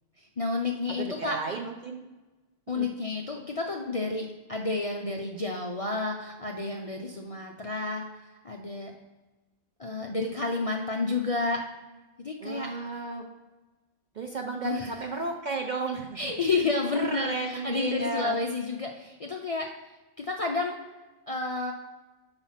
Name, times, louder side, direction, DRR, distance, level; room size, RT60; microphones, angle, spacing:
voice 1, 0.2-1.4 2.7-8.1 8.4-8.9 9.8-11.6 12.2-12.7 14.6-14.9 16.1-20.8 21.3-21.7, left 3 dB, 45° left, 1 dB, 0.5 m, -30 dB
voice 2, 1.0-2.0 2.7-2.9 12.4-13.2 14.2-16.3 16.9-18.4, right 3 dB, 50° right, 2 dB, 0.5 m, -33 dB
6.0 x 4.8 x 5.6 m, 1.1 s
omnidirectional pair, 1.3 m